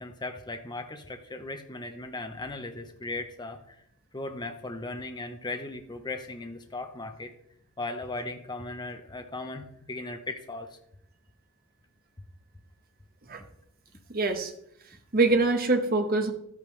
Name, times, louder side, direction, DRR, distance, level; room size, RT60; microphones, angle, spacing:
voice 1, 0.0-3.8 4.1-7.3 7.8-10.8, left 2 dB, 20° left, 6 dB, 0.7 m, -37 dB
voice 2, 14.1-14.5 15.1-16.3, right 3 dB, 40° right, 5 dB, 1.1 m, -24 dB
12.0 x 8.4 x 3.3 m, 0.72 s
head